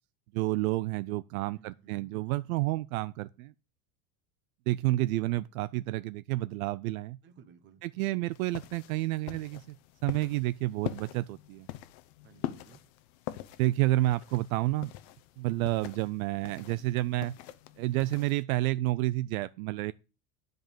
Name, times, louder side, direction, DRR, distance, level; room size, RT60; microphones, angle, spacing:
voice 1, 0.3-3.5 4.7-7.2 7.8-9.8 10.0-11.7 13.6-14.9 15.4-17.3 17.8-19.9, right 18 dB, 70° right, 0.5 m, -30 dB
voice 2, 1.5-2.1 7.2-7.8 12.2-12.8, right 7 dB, 25° right, 1.1 m, -57 dB
sound 1, 8.3-18.4, left 14 dB, 45° left, 0.8 m, -44 dB
10.0 x 5.3 x 7.4 m
supercardioid pair, 175°, 45 cm